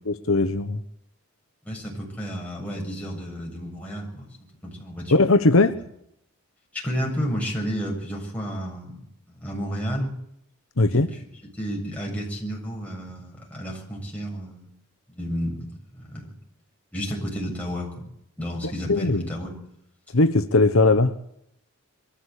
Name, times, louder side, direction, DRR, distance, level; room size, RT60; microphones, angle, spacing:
voice 1, 0.1-0.8 5.1-5.7 10.8-11.1 18.9-19.3 20.1-21.1, left 2 dB, 65° left, 9 dB, 1.1 m, -19 dB
voice 2, 1.6-4.3 4.6-5.2 6.7-9.0 9.3-10.1 10.9-11.2 11.5-14.7 15.1-16.3 16.9-18.1 18.4-19.6, equal, 5° left, -2 dB, 7.4 m, -31 dB
23.5 x 14.0 x 8.3 m, 0.74 s
head